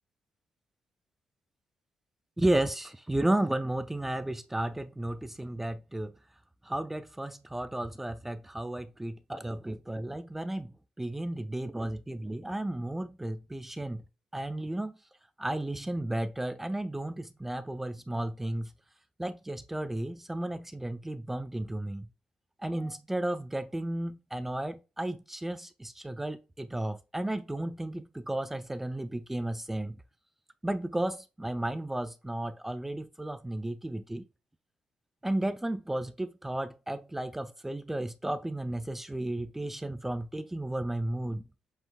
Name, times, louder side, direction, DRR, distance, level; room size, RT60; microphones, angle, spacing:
voice 1, 2.4-6.1 6.6-14.0 14.3-14.9 15.4-18.7 19.2-22.1 22.6-30.0 30.6-34.2 35.2-41.4, right 1 dB, 10° right, 0.3 m, -33 dB
7.7 x 2.9 x 2.3 m
cardioid pair, 115°, 3 cm